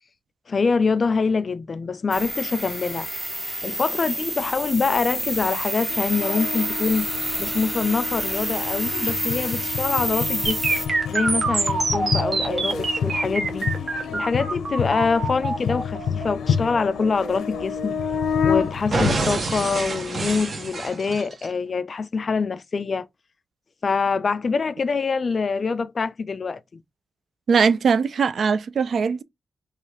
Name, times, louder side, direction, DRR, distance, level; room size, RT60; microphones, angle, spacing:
voice 1, 0.5-3.1 3.6-7.1 7.4-10.6 11.1-13.7 14.1-18.0 18.4-23.1 23.8-26.8, left 4 dB, 50° left, 0.3 m, -25 dB
sound 1, 2.1-10.9, right 1 dB, 15° right, 0.7 m, -29 dB
sound 2, 5.9-19.3, left 7 dB, 90° left, 0.7 m, -29 dB
sound 3, 10.5-18.4 18.9-21.5, right 3 dB, 50° right, 0.9 m, -27 dB
voice 2, 27.5-29.2, right 5 dB, 65° right, 0.3 m, -20 dB
3.0 x 2.4 x 3.3 m
cardioid pair, 70°, 0 cm